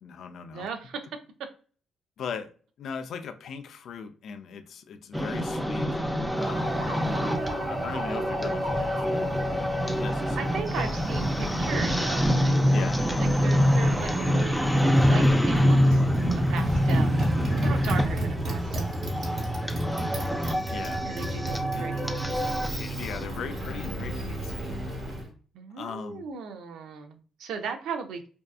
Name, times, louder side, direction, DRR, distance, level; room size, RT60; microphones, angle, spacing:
voice 1, 0.0-0.7 2.2-2.5 2.8-5.9 6.4-6.7 7.7-9.3 10.0-10.9 12.7-13.1 20.7-21.1 21.8-21.9 22.7-24.7 25.8-26.3, left 6 dB, 65° left, 0.3 m, -39 dB
voice 2, 0.5-1.0 6.9-8.5 10.4-12.8 13.2-16.0 16.5-17.3 17.5-19.5 21.0-22.1 25.5-28.3, right 5 dB, 80° right, 0.4 m, -38 dB
sound 1, 5.1-23.2, equal, ahead, 0.4 m, -25 dB
Motorcycle, 6.3-25.3, right 1 dB, 50° right, 1.1 m, -33 dB
2.6 x 2.3 x 2.3 m
cardioid pair, 90°, 0 cm